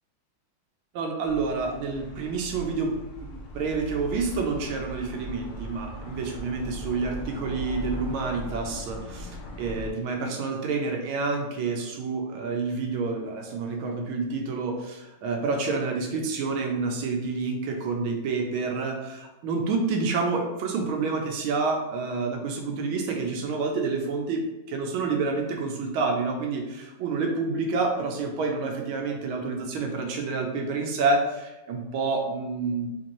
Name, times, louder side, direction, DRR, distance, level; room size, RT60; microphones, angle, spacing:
voice 1, 0.9-2.9 3.2-24.4 24.7-32.9, right 4 dB, 90° right, 2 dB, 1.5 m, -28 dB
sound 1, 1.2-9.9, equal, 80° left, 0.7 m, -39 dB
4.4 x 2.6 x 3.0 m, 0.99 s
omnidirectional pair, 2.2 m